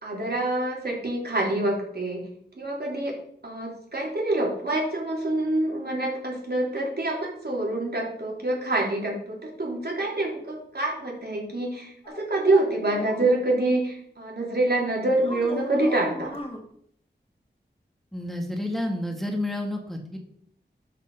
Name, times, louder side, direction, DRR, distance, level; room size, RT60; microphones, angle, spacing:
voice 1, 0.0-2.2 2.6-3.1 3.4-16.4, right 2 dB, 60° right, -2 dB, 3.6 m, -26 dB
sound 1, 12.0-13.3 15.1-16.6, equal, 30° left, 2.3 m, -37 dB
voice 2, 18.1-20.2, left 1 dB, ahead, 2 dB, 1.7 m, -30 dB
12.5 x 5.2 x 5.5 m, 0.67 s
wide cardioid pair, 55°, 18 cm